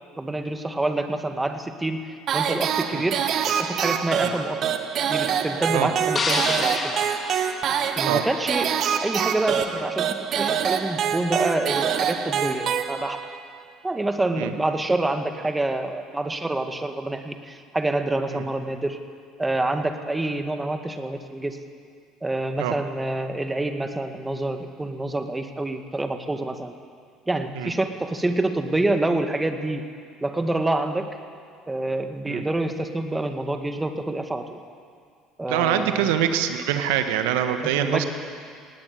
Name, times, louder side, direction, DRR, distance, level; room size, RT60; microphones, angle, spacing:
voice 1, 0.2-4.8 5.1-7.7 8.0-13.3 13.8-19.0 19.4-21.6 22.2-26.7 27.3-29.9 30.2-31.2 31.7-34.6 35.4-36.1 37.6-38.1, right 2 dB, 15° right, 7 dB, 2.0 m, -27 dB
sound 1, 2.3-13.4, right 8 dB, 55° right, 1.4 m, -25 dB
sound 2, 6.2-8.4, left 4 dB, 40° left, 2.5 m, -29 dB
voice 2, 35.5-38.0, right 10 dB, 75° right, 8 dB, 1.5 m, -24 dB
18.5 x 18.5 x 8.0 m, 2.2 s
hypercardioid pair, 65°, 0 cm